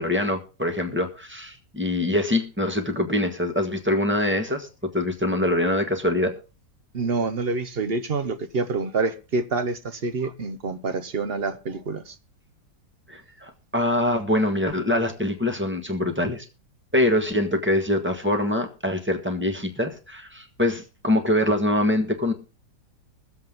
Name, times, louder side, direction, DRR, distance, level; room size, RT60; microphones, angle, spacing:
voice 1, 0.0-6.3 13.1-16.4 16.9-22.3, left 1 dB, 5° right, 1.4 m, -24 dB
voice 2, 6.9-12.2, right 3 dB, 45° right, 0.8 m, -27 dB
22.0 x 7.7 x 3.6 m
omnidirectional pair, 1.9 m